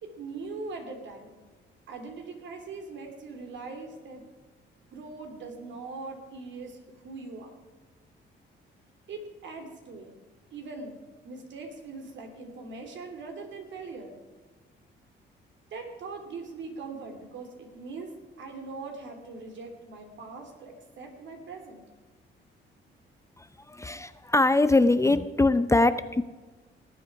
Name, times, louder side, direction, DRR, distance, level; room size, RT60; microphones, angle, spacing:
voice 1, 0.0-1.4 1.9-4.2 4.9-7.6 9.1-10.1 10.5-10.9 11.2-14.1 15.7-18.1 18.4-21.8, right 3 dB, 70° right, 4 dB, 3.0 m, -41 dB
voice 2, 23.4-26.2, left 2 dB, 15° left, 12 dB, 0.6 m, -23 dB
19.0 x 8.5 x 4.8 m, 1.3 s
cardioid pair, 90°, 20 cm